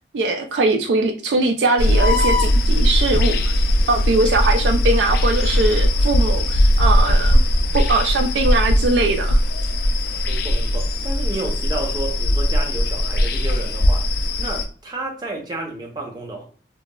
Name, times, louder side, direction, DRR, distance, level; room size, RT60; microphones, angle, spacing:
voice 1, 0.1-3.5 3.9-7.4 7.7-9.4, right 2 dB, 70° right, 0.3 m, -21 dB
sound 1, 1.8-14.7, left 1 dB, 55° left, 0.3 m, -19 dB
voice 2, 10.3-14.1 14.4-16.4, right 2 dB, 20° right, 0.6 m, -31 dB
2.9 x 2.2 x 2.2 m
head